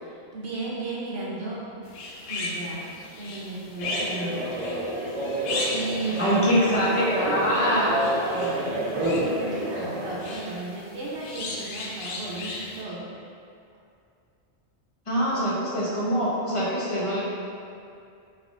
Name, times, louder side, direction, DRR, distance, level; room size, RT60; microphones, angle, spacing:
voice 1, 0.0-1.6 2.2-2.9 3.2-4.5 5.7-6.8 8.3-13.1 15.3-15.5, right 2 dB, 65° right, -5 dB, 1.0 m, -35 dB
sound 1, 1.8-12.8, left 2 dB, 70° left, 0.8 m, -37 dB
sound 2, 3.8-10.4, right 1 dB, 35° right, 0.6 m, -29 dB
voice 2, 6.0-8.1 15.1-17.2, equal, 30° left, -7 dB, 0.8 m, -24 dB
4.7 x 3.4 x 2.5 m, 2.4 s
omnidirectional pair, 1.1 m